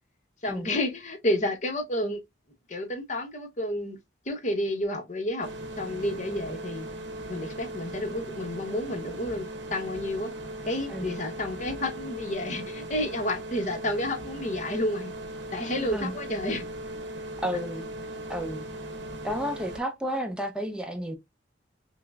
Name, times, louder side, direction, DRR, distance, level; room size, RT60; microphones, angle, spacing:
voice 1, 0.4-2.2 2.7-4.0 4.3-5.5 5.8-6.9 7.3-10.3 10.6-15.1 15.5-16.6, left 1 dB, 40° left, 0.7 m, -30 dB
sound 1, 5.4-19.8, right 1 dB, 70° right, 0.7 m, -38 dB
voice 2, 15.8-16.1 17.4-17.8 18.3-18.7 19.2-21.2, equal, 5° right, 0.5 m, -32 dB
5.7 x 2.0 x 2.3 m
head